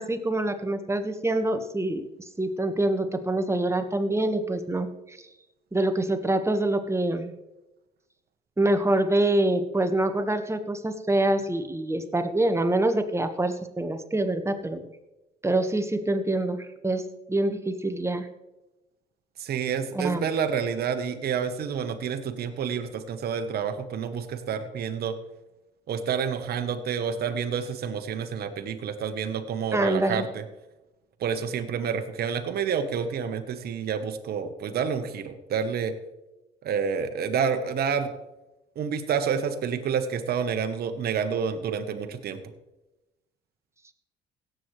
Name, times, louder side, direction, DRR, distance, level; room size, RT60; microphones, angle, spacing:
voice 1, 0.0-2.1 2.4-5.2 5.7-7.3 8.6-14.8 15.4-16.6 16.8-17.0 17.3-18.3 19.9-20.2 29.7-30.2, right 1 dB, 15° right, 8 dB, 1.5 m, -25 dB
voice 2, 19.4-25.2 25.9-30.4 31.2-35.9 36.6-38.1 38.8-42.4, right 7 dB, 55° right, 8 dB, 1.2 m, -29 dB
17.0 x 7.8 x 3.2 m, 0.99 s
hypercardioid pair, 60°, 19 cm